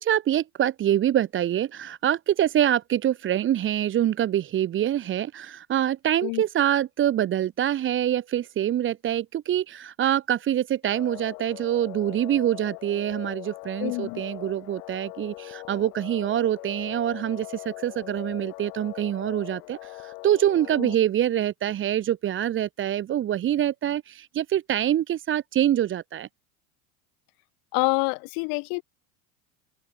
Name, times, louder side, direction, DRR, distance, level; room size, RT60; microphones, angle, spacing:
voice 1, 0.0-26.3, right 11 dB, 25° right, 0.7 m, -25 dB
sound 1, 10.8-20.9, left 26 dB, 65° left, 4.3 m, -41 dB
voice 2, 13.8-14.2 20.8-20.9 27.7-28.8, left 34 dB, 50° left, 0.6 m, -27 dB
hypercardioid pair, 90°, 47 cm